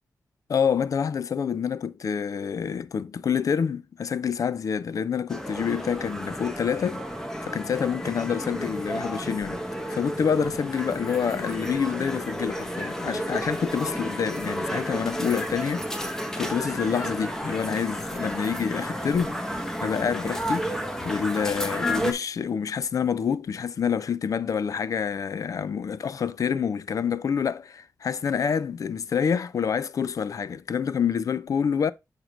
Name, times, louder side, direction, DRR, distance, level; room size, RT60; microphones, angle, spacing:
voice 1, 0.5-7.0 7.4-9.6 9.9-20.7 21.0-31.9, left 7 dB, 55° left, 0.3 m, -27 dB
sound 1, 5.3-22.1, equal, 5° left, 0.8 m, -32 dB
6.3 x 5.1 x 3.0 m
wide cardioid pair, 120°, 7 cm